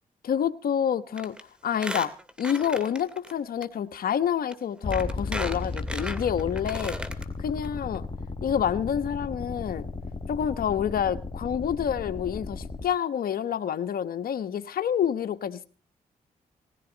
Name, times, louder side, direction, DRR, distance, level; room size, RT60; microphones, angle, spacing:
voice 1, 0.2-1.4 1.6-2.1 2.4-7.0 7.4-8.0 8.4-9.9 10.3-15.7, left 8 dB, 70° left, 1.2 m, -28 dB
Squeak, 1.2-1.4 1.7-3.3 3.6-3.7 4.5-4.6 4.9-7.2 7.6-7.7 7.9-8.0, equal, 5° right, 2.5 m, -35 dB
sound 1, 4.8-12.8, left 3 dB, 35° left, 2.6 m, -35 dB
19.0 x 15.5 x 4.0 m
cardioid pair, 75°, 16 cm